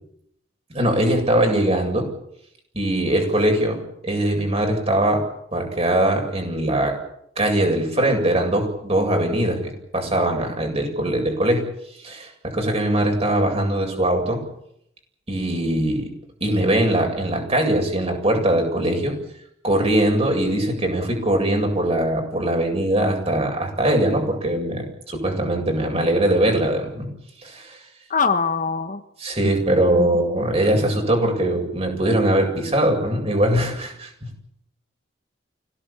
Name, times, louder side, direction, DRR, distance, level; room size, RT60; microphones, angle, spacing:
voice 1, 0.7-2.1 2.7-5.2 5.5-6.9 7.4-11.7 12.0-14.4 15.3-16.1 16.4-19.1 19.6-27.1 27.4-27.8 29.2-34.1, right 1 dB, 30° right, 3 dB, 7.9 m, -21 dB
voice 2, 28.1-29.0 29.4-29.5 30.0-30.1, left 5 dB, 40° left, 8 dB, 1.4 m, -22 dB
26.0 x 18.0 x 8.8 m, 0.77 s
head